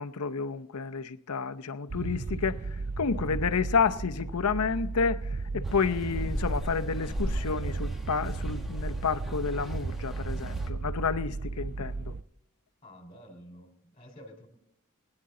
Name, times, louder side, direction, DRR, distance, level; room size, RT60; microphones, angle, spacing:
voice 1, 0.0-2.6 3.0-5.2 5.5-12.0, left 5 dB, 85° left, 0.7 m, -30 dB
sound 1, 1.9-12.2, right 3 dB, 35° right, 0.4 m, -34 dB
sound 2, 5.6-10.7, left 1 dB, ahead, 1.5 m, -39 dB
voice 2, 12.8-14.5, equal, 25° left, 3.1 m, -50 dB
21.5 x 9.7 x 3.8 m
head